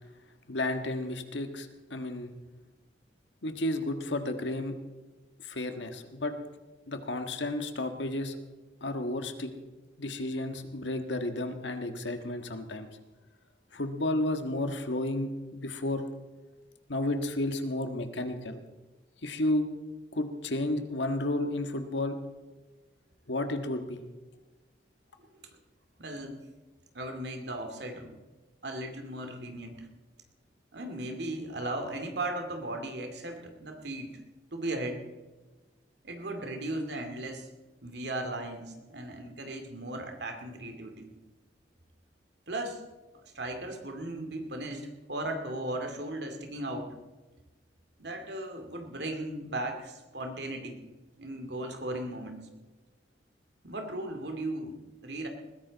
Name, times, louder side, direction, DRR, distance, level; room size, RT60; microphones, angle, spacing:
voice 1, 0.5-2.3 3.4-4.8 5.4-6.4 6.9-8.4 8.8-9.5 10.0-12.9 13.7-16.0 16.9-18.6 19.2-19.6 20.1-22.2 23.3-24.0, left 1 dB, 80° left, 6 dB, 1.6 m, -32 dB
voice 2, 26.0-26.5 26.9-28.1 28.6-29.9 30.7-34.2 34.5-35.0 36.0-37.5 37.8-41.1 42.5-42.8 43.1-46.9 48.0-50.8 51.2-52.4 53.6-55.3, right 1 dB, 65° right, 5 dB, 2.4 m, -37 dB
20.5 x 15.0 x 4.1 m, 1.2 s
head